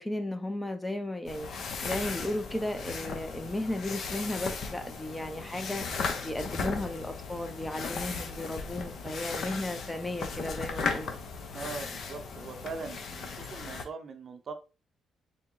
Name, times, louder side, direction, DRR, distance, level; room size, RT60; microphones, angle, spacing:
voice 1, 0.0-1.5 1.8-5.8 6.2-11.1, left 1 dB, 10° left, 0.6 m, -35 dB
sound 1, 1.3-13.8, left 4 dB, 60° left, 0.7 m, -36 dB
voice 2, 11.5-14.5, right 4 dB, 50° right, 0.6 m, -41 dB
3.9 x 2.1 x 3.7 m
cardioid pair, 90°, 0 cm